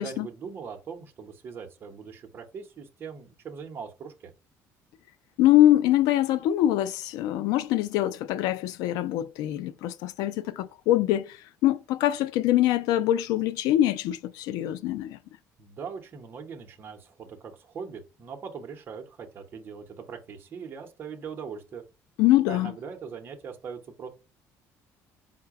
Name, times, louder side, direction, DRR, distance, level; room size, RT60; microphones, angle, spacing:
voice 1, 0.0-4.3 15.6-21.8 22.5-24.1, right 6 dB, 35° right, 0.7 m, -41 dB
voice 2, 5.4-15.2 22.2-22.7, left 13 dB, 90° left, 0.4 m, -24 dB
4.7 x 2.2 x 4.6 m
cardioid pair, 155°, 6 cm